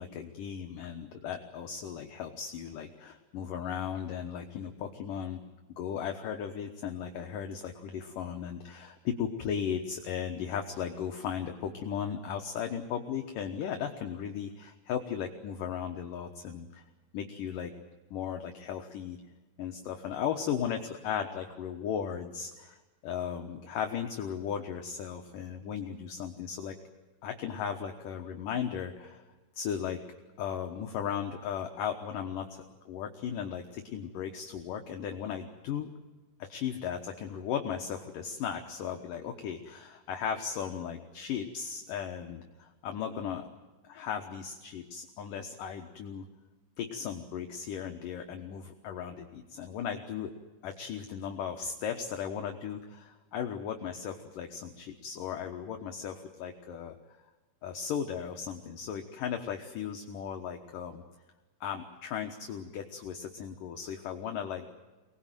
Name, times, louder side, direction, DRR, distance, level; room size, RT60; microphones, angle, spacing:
voice 1, 0.0-5.4 5.8-16.8 17.1-17.7 18.1-19.2 19.6-26.8 27.2-29.2 29.5-30.0 30.4-35.9 36.4-43.5 43.8-46.3 46.8-50.3 50.6-57.0 57.6-61.0 61.6-64.7, left 8 dB, 65° left, 4 dB, 2.2 m, -36 dB
25.0 x 20.0 x 9.1 m, 1.2 s
omnidirectional pair, 5.3 m